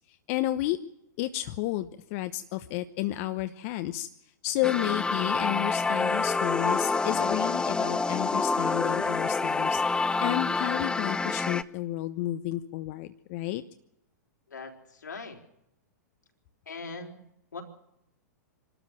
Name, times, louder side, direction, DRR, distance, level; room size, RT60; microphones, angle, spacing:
voice 1, 0.1-0.8 1.2-4.1 4.4-9.8 10.2-13.6, left 15 dB, 45° left, 10 dB, 1.0 m, -31 dB
sound 1, 4.6-11.6, left 3 dB, 10° left, 0.7 m, -27 dB
voice 2, 14.5-15.4 16.7-17.2 17.5-17.6, left 4 dB, 80° left, 3 dB, 3.9 m, -40 dB
26.5 x 13.0 x 7.8 m, 0.81 s
hypercardioid pair, 110°, 10 cm